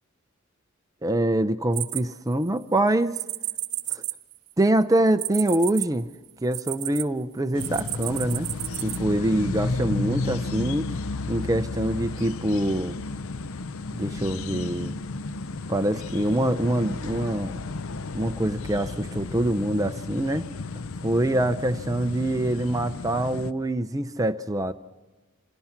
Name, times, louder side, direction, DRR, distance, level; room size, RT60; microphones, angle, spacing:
voice 1, 1.0-3.2 3.9-4.0 4.6-6.1 6.4-8.5 8.8-10.9 11.3-13.0 13.9-14.9 15.7-17.5 18.1-20.5 21.0-24.7, right 1 dB, 15° right, 10 dB, 0.5 m, -25 dB
sound 1, 1.7-2.6 3.1-7.0 7.6-9.0, right 16 dB, 80° right, 0.9 m, -32 dB
sound 2, 7.6-23.5, left 3 dB, 70° left, 0.6 m, -33 dB
27.5 x 17.0 x 5.9 m, 1.2 s
head